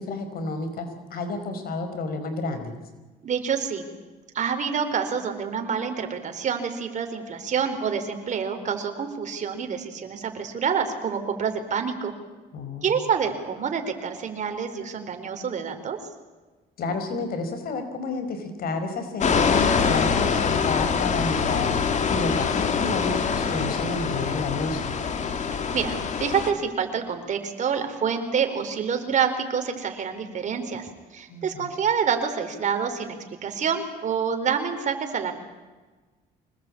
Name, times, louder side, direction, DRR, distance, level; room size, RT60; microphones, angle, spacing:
voice 1, 0.0-2.8 12.5-13.0 16.8-21.7 22.1-24.9 31.3-31.7, left 3 dB, 60° left, 8 dB, 5.0 m, -30 dB
voice 2, 3.2-3.8 4.3-12.1 12.8-16.0 25.7-33.2 33.4-35.3, right 6 dB, 45° right, 6 dB, 4.4 m, -27 dB
sound 1, 19.2-26.5, left 6 dB, 45° left, 2.8 m, -24 dB
25.0 x 20.5 x 8.7 m, 1.3 s
cardioid pair, 110°, 17 cm